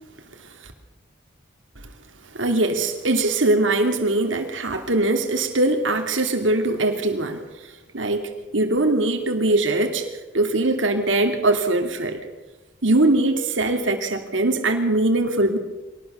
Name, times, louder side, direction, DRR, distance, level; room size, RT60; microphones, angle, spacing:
voice 1, 2.3-7.4 7.9-10.0 10.3-12.2 12.8-15.6, right 2 dB, 80° right, 3 dB, 2.8 m, -21 dB
23.5 x 19.0 x 6.9 m, 1.1 s
head